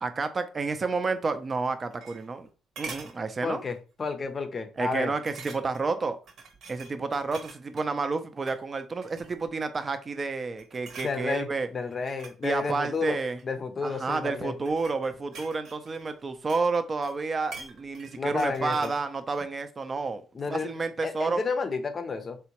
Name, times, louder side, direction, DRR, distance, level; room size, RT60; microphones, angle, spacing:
voice 1, 0.0-2.5 2.8-3.6 4.8-6.2 6.7-11.7 12.4-13.4 13.8-20.2 20.5-21.4, right 4 dB, 35° right, 0.5 m, -30 dB
sound 1, 1.6-2.5 2.8-3.2 3.7-3.9 4.2-4.3 5.3-5.9 6.3-7.9 8.4-8.6 9.0-9.5 10.1-10.3 10.6-11.2 11.9-13.5 14.3-16.8 17.0-19.0 19.3-19.4, right 4 dB, 65° right, 0.9 m, -45 dB
voice 2, 3.4-5.1 11.0-13.2 13.4-14.6 18.2-18.9 20.3-22.4, left 4 dB, 40° left, 0.6 m, -31 dB
3.7 x 2.1 x 2.9 m
cardioid pair, 85°, 0 cm